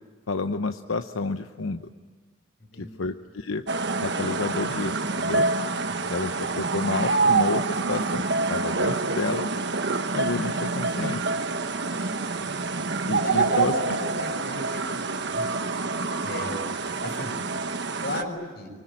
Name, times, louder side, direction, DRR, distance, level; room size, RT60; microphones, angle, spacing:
voice 1, 0.3-1.9 2.8-3.6 4.0-5.5 6.1-9.5 10.1-11.2 13.1-13.7, left 3 dB, 85° left, 8 dB, 0.9 m, -30 dB
voice 2, 2.7-3.1 5.8-6.1 12.4-12.9 13.2-15.1 15.3-15.5 16.2-16.6 17.0-17.4 17.9-18.7, left 1 dB, 55° left, 5 dB, 6.6 m, -34 dB
sound 1, 3.7-18.2, right 3 dB, 60° right, 1.3 m, -27 dB
25.0 x 24.5 x 8.8 m, 1.4 s
head